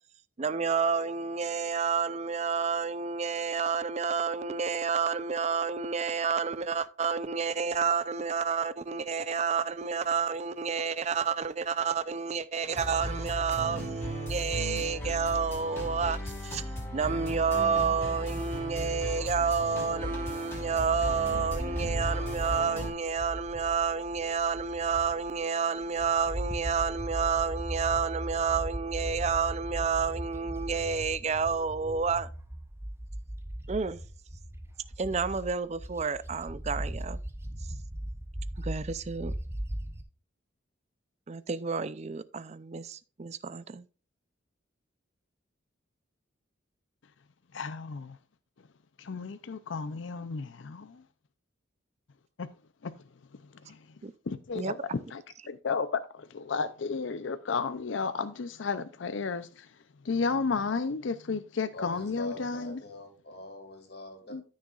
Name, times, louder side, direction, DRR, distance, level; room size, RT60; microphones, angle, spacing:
voice 1, 0.4-32.3 33.7-34.0 35.0-37.2 38.6-39.3 41.3-43.9 54.0-54.1 54.5-55.0, right 5 dB, 35° right, 0.5 m, -30 dB
sound 1, 12.7-22.9, equal, 15° left, 3.6 m, -36 dB
Bird, 20.9-25.4 25.8-40.0, right 1 dB, 15° right, 0.9 m, -38 dB
voice 2, 47.5-48.2 49.0-51.0 52.4-52.5 52.8-52.9 53.5-53.9 54.3-59.7 60.0-62.8 64.3-64.4, left 4 dB, 70° left, 0.5 m, -33 dB
voice 3, 61.7-64.3, left 1 dB, 55° left, 2.8 m, -43 dB
13.5 x 6.3 x 2.4 m
head